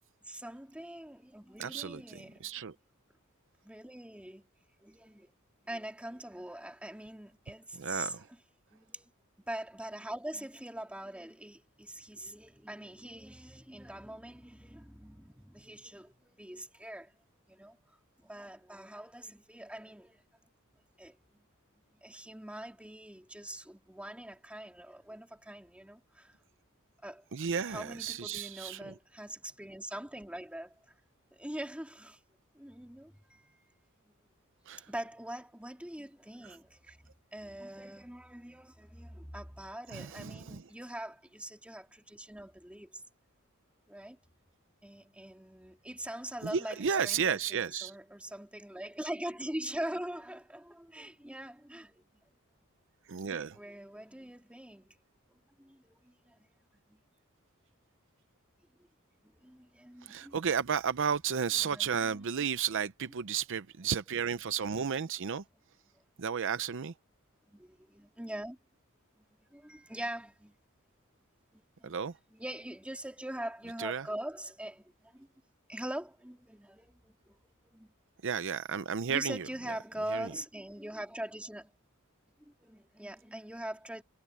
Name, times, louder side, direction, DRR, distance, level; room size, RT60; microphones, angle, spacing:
voice 1, 0.2-2.5 3.6-4.4 4.8-5.3 5.6-8.4 8.7-9.1 9.5-17.1 17.5-17.8 18.2-20.2 21.0-21.4 22.0-26.3 27.0-27.2 27.6-30.7 31.3-32.2 32.5-33.7 34.9-43.0 43.9-44.2 44.8-52.0 53.3-54.9 55.3-56.5 56.9-57.0 59.4-60.4 61.5-62.5 67.5-68.6 69.2-69.3 69.5-70.5 71.5-72.0 72.3-75.3 75.7-77.4 77.6-77.9 79.1-81.7 82.4-84.0, right 1 dB, 5° right, 2.8 m, -43 dB
voice 2, 1.6-2.7 7.8-8.2 27.3-28.9 34.7-34.8 39.9-40.6 46.4-47.9 53.1-53.5 60.0-65.4 66.2-66.9 71.8-72.1 73.8-74.1 78.2-79.5 80.1-80.3, right 7 dB, 60° right, 0.6 m, -33 dB
head